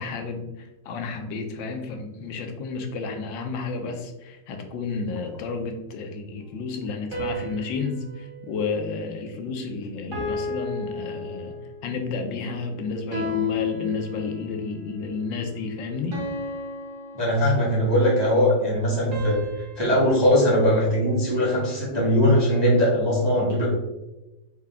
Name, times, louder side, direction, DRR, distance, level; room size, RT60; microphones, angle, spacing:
voice 1, 0.0-11.6 11.8-16.2, left 4 dB, 85° left, 4 dB, 1.3 m, -31 dB
sound 1, 7.1-9.6 10.1-11.9 13.1-14.6 16.1-18.0 19.1-21.5, left 3 dB, 50° right, 1.4 m, -33 dB
voice 2, 17.1-19.4 19.8-23.7, equal, 25° right, -5 dB, 0.6 m, -20 dB
4.7 x 2.3 x 3.3 m, 1.0 s
omnidirectional pair, 2.0 m